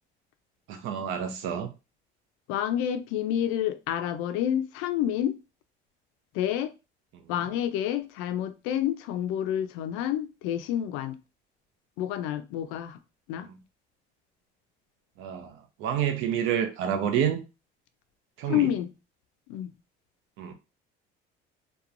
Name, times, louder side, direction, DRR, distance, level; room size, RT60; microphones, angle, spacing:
voice 1, 0.7-1.7 13.4-13.6 15.2-17.4 18.4-18.7 20.4-20.5, right 9 dB, 75° right, 0.6 m, -29 dB
voice 2, 2.5-5.4 6.3-6.7 7.3-11.2 12.0-13.0 13.3-13.5 18.5-18.9 19.5-19.7, left 11 dB, 85° left, 0.4 m, -29 dB
2.9 x 2.2 x 2.5 m
cardioid pair, 115°, 20 cm